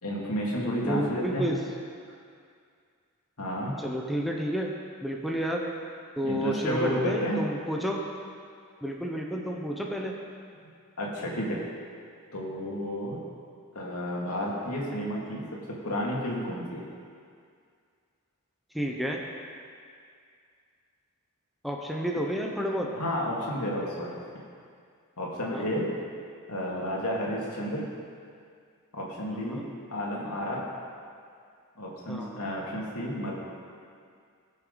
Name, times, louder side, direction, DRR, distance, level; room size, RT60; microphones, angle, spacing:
voice 1, 0.0-1.4 3.4-3.8 6.2-7.4 11.0-11.6 12.3-13.2 13.7-16.8 22.9-24.2 25.2-25.9 26.5-27.9 28.9-29.6 29.9-30.7 31.8-33.3, equal, 85° left, -3 dB, 2.4 m, -31 dB
voice 2, 0.8-1.6 3.8-4.7 5.0-5.6 6.2-8.0 8.8-10.1 18.7-19.2 21.6-22.9 25.5-25.7 29.5-29.6 32.1-32.4, equal, ahead, -1 dB, 0.9 m, -30 dB
19.5 x 6.5 x 4.0 m, 2.2 s
head